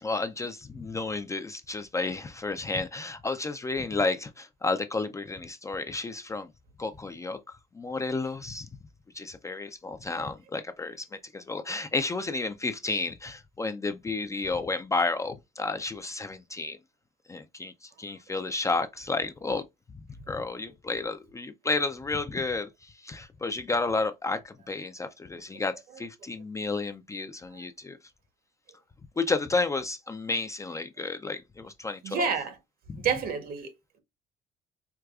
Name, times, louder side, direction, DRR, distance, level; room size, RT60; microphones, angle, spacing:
voice 1, 0.0-6.5 6.8-8.7 9.1-16.8 17.3-19.6 19.9-20.0 20.3-28.0 29.2-32.3 32.9-33.0, left 3 dB, 20° left, 0.3 m, -32 dB
voice 2, 32.0-32.6 33.0-33.7, right 6 dB, 60° right, 1.0 m, -29 dB
4.7 x 2.2 x 2.3 m
cardioid pair, 110°, 17 cm